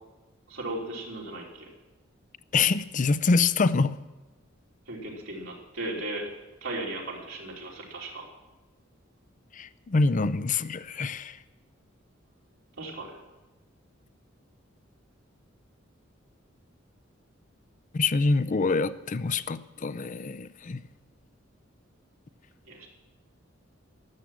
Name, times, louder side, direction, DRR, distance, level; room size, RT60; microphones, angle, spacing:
voice 1, 0.5-1.7 4.9-6.3 6.6-8.2 12.8-13.2 22.6-22.9, right 2 dB, 90° right, 3.4 m, -36 dB
voice 2, 2.5-4.0 9.5-11.4 17.9-20.8, left 4 dB, 40° left, 0.5 m, -25 dB
13.0 x 11.5 x 7.5 m
head